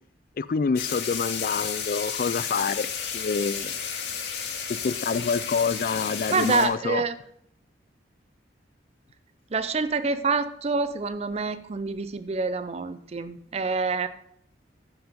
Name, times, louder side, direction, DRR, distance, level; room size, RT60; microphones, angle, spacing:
voice 1, 0.4-3.8 4.7-7.0, left 5 dB, 50° left, 0.3 m, -27 dB
sound 1, 0.8-6.7, left 7 dB, 65° left, 2.2 m, -32 dB
voice 2, 6.3-7.2 9.5-14.1, right 4 dB, 35° right, 0.5 m, -27 dB
9.3 x 7.1 x 5.2 m
head